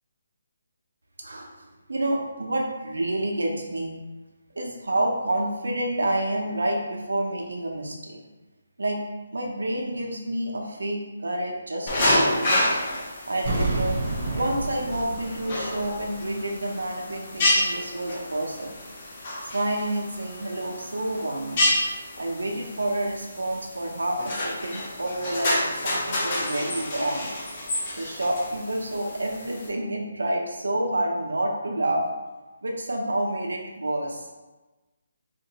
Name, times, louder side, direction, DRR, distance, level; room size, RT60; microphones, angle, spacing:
voice 1, 1.2-3.9 4.6-8.3 8.8-9.0 9.3-12.7 13.3-14.0 14.3-18.7 19.4-21.7 22.2-27.3 28.0-32.0 32.6-34.2, right 1 dB, 85° right, 0 dB, 0.7 m, -29 dB
sound 1, 11.9-29.7, left 1 dB, 35° left, 0.8 m, -29 dB
sound 2, 13.4-16.3 16.6-16.7, right 2 dB, 35° right, 1.0 m, -30 dB
3.9 x 2.5 x 2.9 m, 1.2 s
hypercardioid pair, 160°, 0 cm